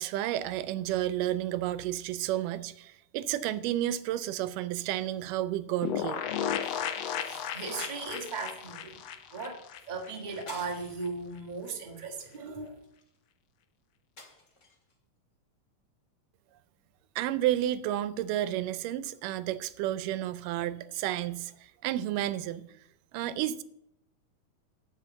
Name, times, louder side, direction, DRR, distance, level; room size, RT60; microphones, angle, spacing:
voice 1, 0.0-6.2 17.2-21.5 21.8-22.7 23.1-23.6, right 13 dB, 85° right, 2.2 m, -31 dB
sound 1, 5.8-10.4 10.7-10.8 11.0-11.1, left 9 dB, 70° left, 1.6 m, -34 dB
voice 2, 7.2-9.0 9.3-12.8, right 4 dB, 20° right, 1.1 m, -38 dB
sound 2, 10.5-11.2 11.7-11.9 12.2-13.2 14.2-14.9, left 2 dB, 30° left, 1.8 m, -50 dB
10.5 x 6.2 x 7.9 m
omnidirectional pair, 3.7 m